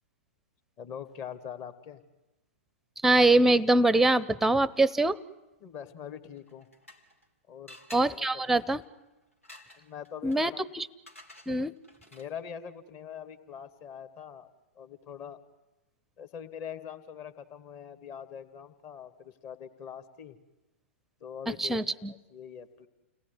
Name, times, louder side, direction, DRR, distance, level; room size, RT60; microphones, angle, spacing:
voice 1, 0.8-2.0 5.6-6.7 7.5-7.8 8.1-8.6 9.7-10.6 12.1-14.5 14.8-15.4 16.2-20.4 21.2-21.8 22.1-22.9, left 8 dB, 30° left, 9 dB, 2.3 m, -43 dB
voice 2, 3.0-5.2 7.9-8.8 10.2-10.9 11.5-11.7 21.6-22.1, right 2 dB, 5° right, 21 dB, 0.9 m, -23 dB
sound 1, 6.4-7.3 7.7-12.5, left 1 dB, 85° left, 3.6 m, -53 dB
30.0 x 19.5 x 9.8 m, 1.0 s
figure-of-eight pair, 105°, 7 cm